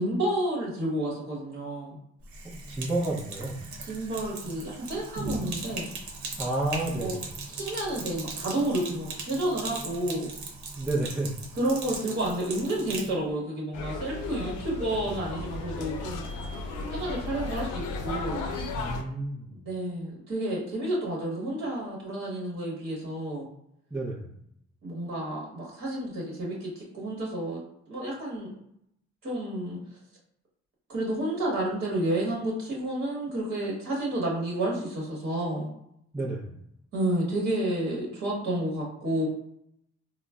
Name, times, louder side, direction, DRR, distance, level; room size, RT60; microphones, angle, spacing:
voice 1, 0.0-2.0 3.8-5.9 6.9-7.2 7.5-10.3 11.6-16.3 16.9-18.5 19.6-23.5 24.8-28.5 29.2-29.8 30.9-35.7 36.9-39.3, right 1 dB, 40° right, -4 dB, 1.0 m, -30 dB
Sink (filling or washing), 2.2-13.1, right 3 dB, 70° right, 0.8 m, -38 dB
voice 2, 2.4-3.7 6.4-7.2 10.8-11.4 18.8-19.7 23.9-24.3 36.1-36.6, right 2 dB, 10° right, -6 dB, 0.6 m, -31 dB
sound 1, 13.7-19.0, left 3 dB, 90° left, 0.5 m, -34 dB
3.8 x 2.0 x 2.3 m, 0.75 s
cardioid pair, 90°, 30 cm